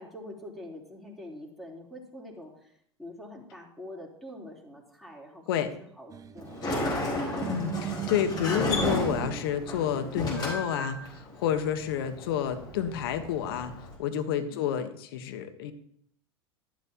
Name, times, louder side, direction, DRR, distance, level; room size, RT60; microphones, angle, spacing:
voice 1, 0.0-5.6 5.9-7.6 14.4-14.8, left 1 dB, ahead, -3 dB, 3.6 m, -45 dB
sound 1, 6.1-9.4, right 11 dB, 25° right, 0.8 m, -38 dB
Sliding door, 6.4-14.0, left 1 dB, 30° left, 4.5 m, -33 dB
voice 2, 7.5-15.7, left 9 dB, 60° left, 9 dB, 1.3 m, -30 dB
13.0 x 11.5 x 3.0 m, 0.66 s
figure-of-eight pair, 85°, 14 cm